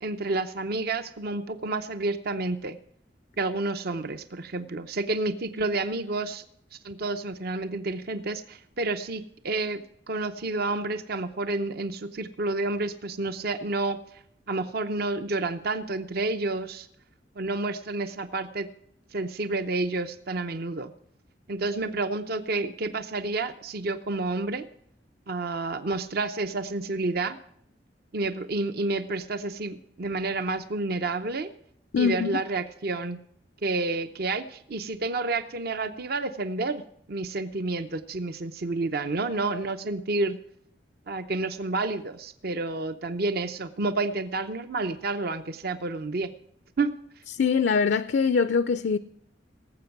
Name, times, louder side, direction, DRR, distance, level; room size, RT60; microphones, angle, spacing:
voice 1, 0.0-2.8 3.4-6.4 6.7-16.9 17.4-18.7 19.1-20.9 21.5-24.7 25.3-27.4 28.1-31.5 32.0-33.2 33.6-36.8 37.1-40.4 41.1-46.3 46.8-46.9, right 3 dB, 60° right, 0.7 m, -30 dB
voice 2, 31.9-32.3 47.4-49.0, left 5 dB, 65° left, 0.4 m, -23 dB
18.0 x 7.8 x 5.9 m
head